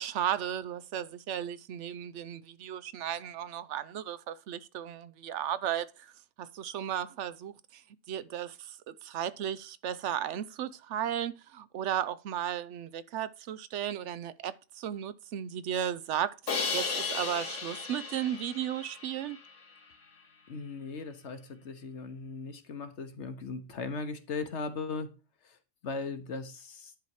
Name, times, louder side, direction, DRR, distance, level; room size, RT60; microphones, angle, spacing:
voice 1, 0.0-5.9 6.4-7.8 8.1-19.4, right 10 dB, 70° right, 0.9 m, -35 dB
Crash cymbal, 16.5-19.5, left 5 dB, 85° left, 1.8 m, -35 dB
voice 2, 20.5-25.1 25.4-25.6 25.8-26.9, left 4 dB, 65° left, 1.3 m, -38 dB
10.5 x 4.2 x 4.7 m
omnidirectional pair, 1.3 m